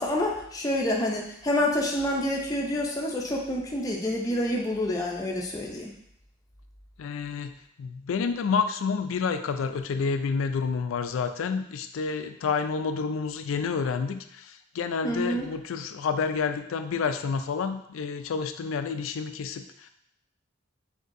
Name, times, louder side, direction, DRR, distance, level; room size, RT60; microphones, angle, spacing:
voice 1, 0.0-5.9 15.0-15.5, left 1 dB, 20° left, -2 dB, 0.5 m, -28 dB
voice 2, 7.0-19.9, left 5 dB, 85° left, 9 dB, 0.4 m, -29 dB
6.4 x 2.7 x 2.6 m, 0.73 s
head